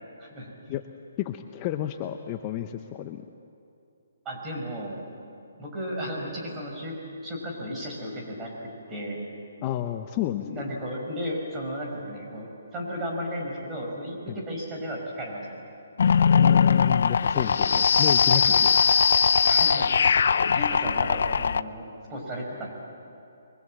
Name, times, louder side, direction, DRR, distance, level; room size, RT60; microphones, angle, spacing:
voice 1, 0.2-0.5 4.2-5.0 5.6-6.9 7.2-9.2 10.4-15.5 19.4-20.2 20.5-22.8, equal, 15° right, -2 dB, 5.7 m, -34 dB
voice 2, 1.2-3.2 9.6-10.6 14.3-14.4 16.3-18.8, left 11 dB, 25° left, 7 dB, 0.8 m, -31 dB
sound 1, 16.0-21.6, left 6 dB, 65° left, 0.6 m, -20 dB
28.5 x 23.0 x 7.7 m, 2.7 s
hypercardioid pair, 160°, 0 cm